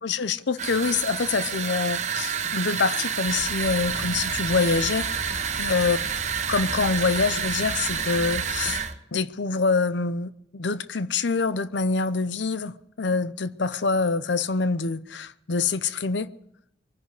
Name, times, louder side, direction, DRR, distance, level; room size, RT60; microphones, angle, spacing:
voice 1, 0.0-6.0 6.5-8.8 9.1-16.3, left 4 dB, 90° left, 0.7 m, -25 dB
sound 1, 0.6-8.9, right 7 dB, 40° right, 0.9 m, -29 dB
sound 2, 3.2-8.8, left 1 dB, 60° left, 1.6 m, -38 dB
23.5 x 10.5 x 4.9 m
head